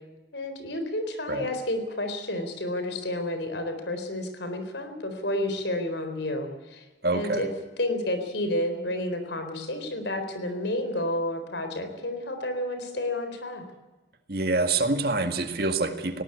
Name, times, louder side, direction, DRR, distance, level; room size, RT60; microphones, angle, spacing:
voice 1, 0.3-7.5 7.8-13.6, left 1 dB, 70° left, 7 dB, 4.0 m, -30 dB
voice 2, 7.0-7.4 14.3-16.2, right 2 dB, 55° right, 7 dB, 2.0 m, -26 dB
19.5 x 17.5 x 8.6 m, 1.2 s
head